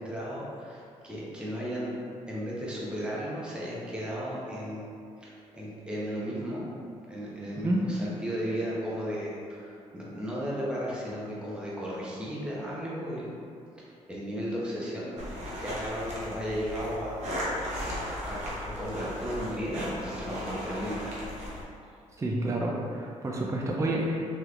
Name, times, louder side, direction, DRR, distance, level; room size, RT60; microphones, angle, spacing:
voice 1, 0.0-1.9 2.3-4.9 5.2-6.7 7.1-13.3 13.8-15.4 15.6-17.2 18.2-21.2, equal, 5° right, -7 dB, 0.8 m, -35 dB
sound 1, 15.2-21.6, equal, 60° right, 0.9 m, -36 dB
voice 2, 22.2-24.2, right 1 dB, 25° right, -2 dB, 0.4 m, -29 dB
3.4 x 2.8 x 2.5 m, 2.4 s
cardioid pair, 75°, 13 cm